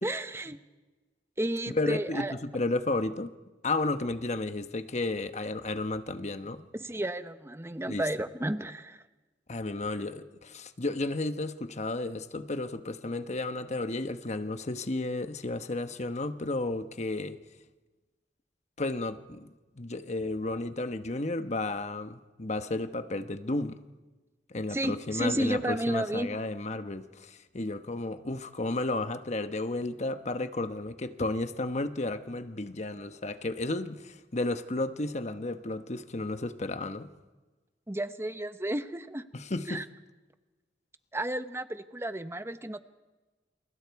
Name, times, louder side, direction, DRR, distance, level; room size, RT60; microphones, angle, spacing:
voice 1, 0.0-0.6 1.4-2.3 6.7-9.0 24.7-26.4 37.9-39.3 39.7-39.8 41.1-42.8, right 1 dB, 15° right, 0.9 m, -32 dB
voice 2, 1.7-3.3 3.6-6.7 7.9-8.0 9.5-17.4 18.8-23.8 24.5-37.1 39.3-39.8, left 2 dB, 40° left, 1.1 m, -33 dB
28.5 x 27.5 x 4.7 m
head